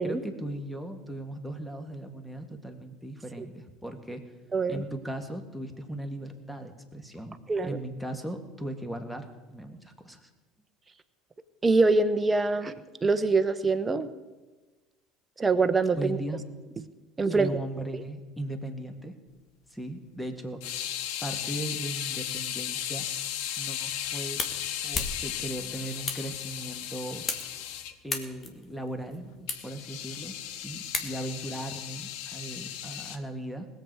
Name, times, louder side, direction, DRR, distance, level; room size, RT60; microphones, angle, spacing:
voice 1, 0.0-4.2 4.7-7.4 7.6-10.3 15.9-16.4 17.2-19.1 19.7-20.7 21.2-23.1 23.6-24.4 24.8-27.2 28.0-33.7, right 1 dB, ahead, 6 dB, 2.0 m, -38 dB
voice 2, 4.5-4.8 7.5-7.8 11.6-12.7 13.0-14.1 15.4-16.2 17.2-17.5 17.9-18.0, right 3 dB, 25° right, 10 dB, 1.0 m, -24 dB
sound 1, 20.6-27.9 29.5-33.2, left 11 dB, 65° left, 0.8 m, -36 dB
sound 2, 23.7-31.5, left 4 dB, 35° left, 1.9 m, -38 dB
21.0 x 7.9 x 4.8 m, 1.2 s
hypercardioid pair, 70°, 0 cm